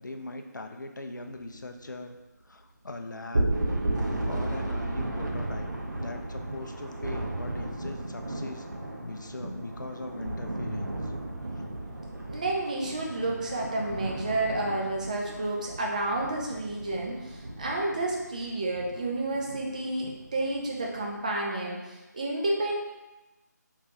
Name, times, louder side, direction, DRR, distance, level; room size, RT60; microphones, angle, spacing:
voice 1, 0.0-2.2 2.4-3.6 4.2-5.7 6.0-8.7 9.0-11.1, left 2 dB, 85° left, 5 dB, 0.4 m, -40 dB
sound 1, 3.3-7.7, right 2 dB, 60° right, 1.2 m, -31 dB
Thunder, 3.5-21.2, right 1 dB, 85° right, 0.6 m, -38 dB
voice 2, 12.3-22.7, right 2 dB, 25° right, -1 dB, 0.4 m, -30 dB
3.2 x 3.0 x 2.6 m, 1.1 s
figure-of-eight pair, 155°, 10 cm